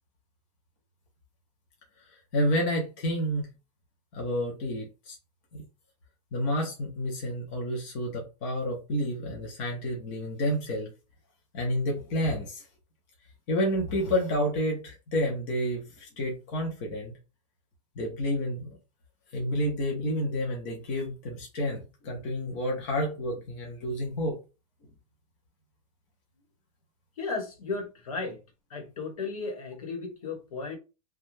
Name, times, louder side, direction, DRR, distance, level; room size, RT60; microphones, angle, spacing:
voice 1, 2.3-3.4 4.1-5.2 5.5-5.6 6.3-10.9 11.5-12.6 13.5-17.1 18.0-18.8 19.3-24.4, equal, 15° left, 0.4 m, -30 dB
voice 2, 27.2-28.4 28.7-30.8, left 4 dB, 65° left, 1.0 m, -35 dB
2.5 x 2.2 x 3.0 m
supercardioid pair, 180°, 20 cm